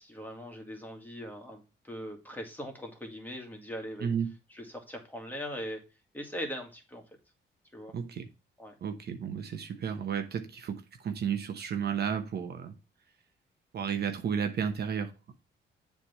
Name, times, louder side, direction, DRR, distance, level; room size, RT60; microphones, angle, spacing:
voice 1, 0.0-4.1 4.5-5.8 6.1-7.0 7.7-8.0 8.6-8.8, equal, 10° left, 2.1 m, -40 dB
voice 2, 4.0-4.3 7.9-8.3 8.8-12.8 13.7-15.1, right 7 dB, 55° right, 0.9 m, -32 dB
7.3 x 3.5 x 5.5 m
cardioid pair, 90°, 20 cm